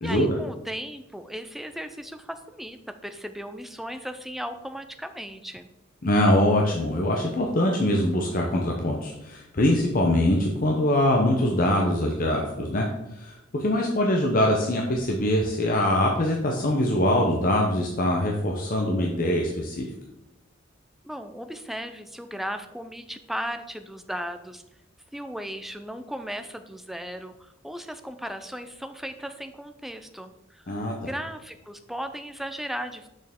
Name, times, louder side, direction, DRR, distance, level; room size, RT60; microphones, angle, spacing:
voice 1, 0.0-5.7 21.0-24.6 25.1-30.7 31.0-33.1, equal, ahead, 8 dB, 0.4 m, -36 dB
voice 2, 6.0-12.9 13.1-19.9 30.7-30.9, left 1 dB, 45° left, 0 dB, 0.8 m, -23 dB
6.6 x 6.3 x 3.6 m, 0.90 s
head